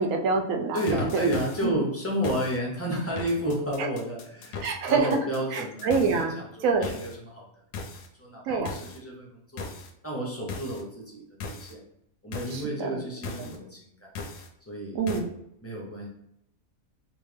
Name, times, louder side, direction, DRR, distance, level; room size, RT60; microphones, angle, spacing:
voice 1, 0.0-1.3 1.6-1.7 3.8-3.9 4.6-5.2 5.5-6.9 8.5-8.7 12.5-12.9 13.4-13.5 14.9-15.3, right 4 dB, 70° right, 4 dB, 0.9 m, -26 dB
sound 1, 0.7-1.7 2.2-2.6 3.2-6.2 6.8-7.1 7.7-8.1 8.6-9.0 9.6-9.9 10.5-10.8 11.4-11.7 12.3-12.6 13.2-13.6 14.1-14.5 15.1-15.2, left 4 dB, 70° left, 0.9 m, -38 dB
voice 2, 0.7-7.5 8.2-9.7 10.0-11.8 12.2-14.1 14.7-15.0 15.6-16.1, equal, 20° left, -3 dB, 0.4 m, -31 dB
3.6 x 2.5 x 3.2 m, 0.77 s
omnidirectional pair, 1.6 m